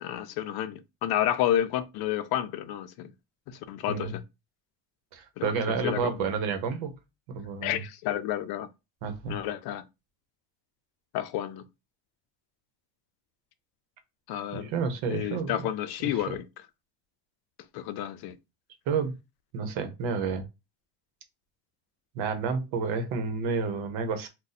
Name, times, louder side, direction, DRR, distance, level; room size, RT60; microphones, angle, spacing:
voice 1, 0.0-3.1 3.5-4.2 5.4-6.1 7.6-8.7 9.3-9.9 11.1-11.6 14.3-14.7 15.1-16.4 17.7-18.4, left 11 dB, 60° left, 0.5 m, -30 dB
voice 2, 3.9-4.2 5.1-7.0 7.3-7.8 9.0-9.4 14.5-15.6 16.1-16.2 18.9-19.1 19.5-20.4 22.1-24.3, right 5 dB, 85° right, 0.9 m, -30 dB
2.6 x 2.3 x 3.9 m
cardioid pair, 150°, 44 cm